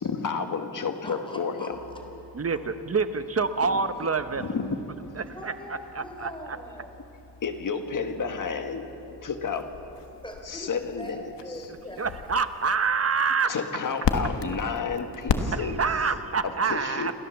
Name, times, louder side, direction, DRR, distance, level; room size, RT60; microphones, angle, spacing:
voice 1, 0.0-1.8 3.7-4.1 4.4-4.8 7.4-9.7 10.4-11.2 11.5-11.6 13.5-15.8 16.4-17.1, left 5 dB, 50° left, 7 dB, 1.6 m, -31 dB
voice 2, 1.0-2.0 5.3-7.0 10.2-10.7 11.0-12.0 12.3-12.4, equal, 10° left, 2 dB, 3.8 m, -42 dB
sound 1, 1.7-16.1, left 5 dB, 85° left, 1.4 m, -37 dB
voice 3, 2.3-4.4 5.4-5.5 6.0-6.6 12.0-13.5 15.5-17.1, right 5 dB, 35° right, 10 dB, 1.0 m, -26 dB
28.5 x 13.5 x 7.2 m, 2.9 s
wide cardioid pair, 100°, 41 cm